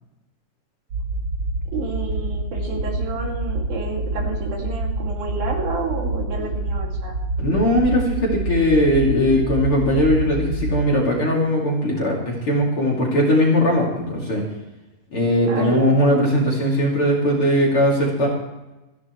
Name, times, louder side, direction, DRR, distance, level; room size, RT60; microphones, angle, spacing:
sound 1, 0.9-10.8, right 2 dB, 45° right, 2.6 m, -27 dB
voice 1, 1.7-7.2 15.5-15.9, right 3 dB, 65° right, -1 dB, 4.2 m, -29 dB
voice 2, 7.4-14.4 15.1-18.3, left 1 dB, 35° left, -3 dB, 3.3 m, -19 dB
27.5 x 10.5 x 3.2 m, 1.0 s
omnidirectional pair, 4.5 m